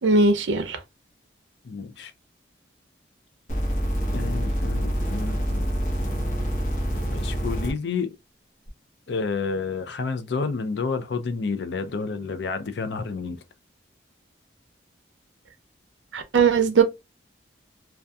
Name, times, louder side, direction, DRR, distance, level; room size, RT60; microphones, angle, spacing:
voice 1, 0.0-0.8 16.1-16.8, right 4 dB, 80° right, 0.5 m, -19 dB
voice 2, 1.6-2.1 4.1-5.7 7.1-8.1 9.1-13.4, left 4 dB, 65° left, 0.4 m, -30 dB
sound 1, 3.5-7.7 8.7-8.8, equal, 40° left, 0.9 m, -26 dB
2.6 x 2.3 x 2.2 m
head